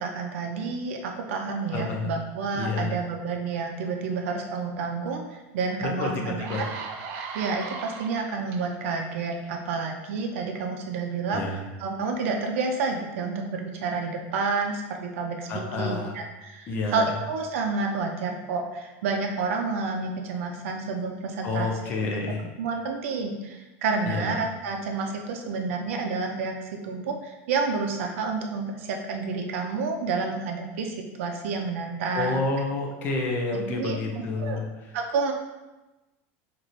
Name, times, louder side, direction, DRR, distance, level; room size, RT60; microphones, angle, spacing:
voice 1, 0.0-6.7 7.3-21.7 22.6-32.4 33.5-34.0 34.4-34.6 34.9-35.3, right 4 dB, 90° right, 2 dB, 0.5 m, -29 dB
voice 2, 1.7-2.1 2.5-3.0 5.8-6.7 11.3-11.6 15.5-16.2 16.7-17.2 21.4-22.5 24.1-24.3 32.1-34.6, left 3 dB, 25° left, 1 dB, 0.5 m, -29 dB
sound 1, 5.6-5.7 6.2-8.6 9.3-9.5, right 5 dB, 35° right, 0.3 m, -37 dB
3.1 x 2.5 x 4.1 m, 1.1 s
supercardioid pair, 175°, 7 cm